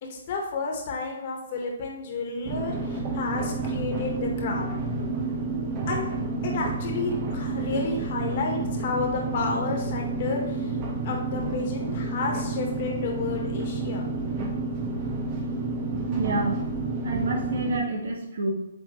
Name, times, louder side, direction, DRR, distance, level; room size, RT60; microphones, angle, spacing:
voice 1, 0.0-4.8 5.9-6.1 6.4-10.8 11.0-14.0, left 4 dB, 50° left, 1 dB, 1.7 m, -31 dB
sound 1, 2.4-17.8, right 3 dB, 35° right, 1.3 m, -30 dB
voice 2, 16.1-16.6 17.0-18.5, right 3 dB, 65° right, 0 dB, 1.7 m, -28 dB
8.4 x 3.8 x 3.2 m, 0.92 s
hypercardioid pair, 130°, 0 cm